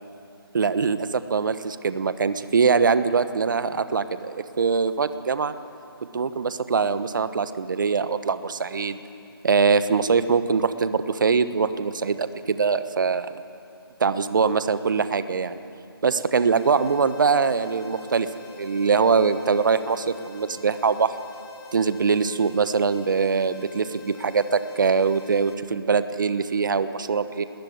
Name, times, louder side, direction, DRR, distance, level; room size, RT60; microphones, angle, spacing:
voice 1, 0.5-5.5 6.1-9.0 9.4-13.3 14.0-15.6 16.0-18.3 18.6-21.1 21.7-27.4, right 5 dB, 55° right, 12 dB, 1.2 m, -23 dB
sound 1, 16.5-25.5, left 6 dB, 75° left, 5.2 m, -46 dB
25.5 x 20.5 x 9.5 m, 2.7 s
figure-of-eight pair, 160°, 13 cm